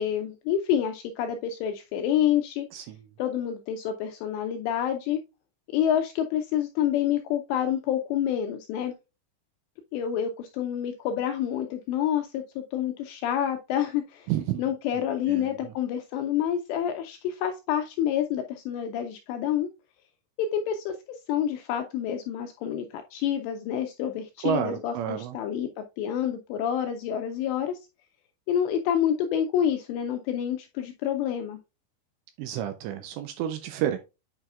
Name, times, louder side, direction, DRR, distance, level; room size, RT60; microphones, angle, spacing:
voice 1, 0.0-2.7 3.2-5.2 5.7-8.9 9.9-14.3 14.6-19.7 20.4-27.8 28.5-31.6, left 9 dB, 90° left, 5 dB, 2.5 m, -28 dB
voice 2, 14.3-14.6 15.0-15.7 24.4-25.4 32.4-34.0, right 11 dB, 80° right, 8 dB, 2.6 m, -30 dB
8.8 x 4.8 x 2.3 m, 0.26 s
omnidirectional pair, 5.6 m